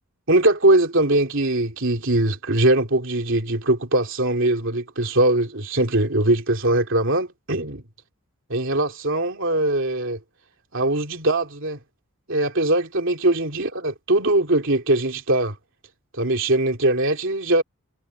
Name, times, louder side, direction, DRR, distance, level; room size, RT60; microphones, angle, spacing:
voice 1, 0.3-7.8 8.5-10.2 10.7-11.8 12.3-15.5 16.1-17.6, right 1 dB, 55° right, 3.2 m, -21 dB
head